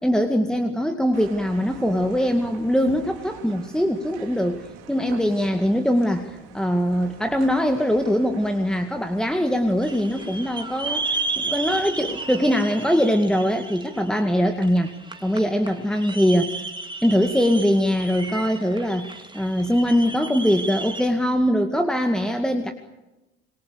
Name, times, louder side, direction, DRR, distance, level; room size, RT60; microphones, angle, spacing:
voice 1, 0.0-14.9 15.2-16.6 17.0-22.7, equal, ahead, 6 dB, 2.2 m, -22 dB
sound 1, 1.1-12.5, right 8 dB, 75° right, 3.6 m, -45 dB
sound 2, 9.8-21.1, right 3 dB, 15° right, 3.2 m, -33 dB
27.5 x 23.0 x 6.8 m, 1.0 s
hypercardioid pair, 65°, 34 cm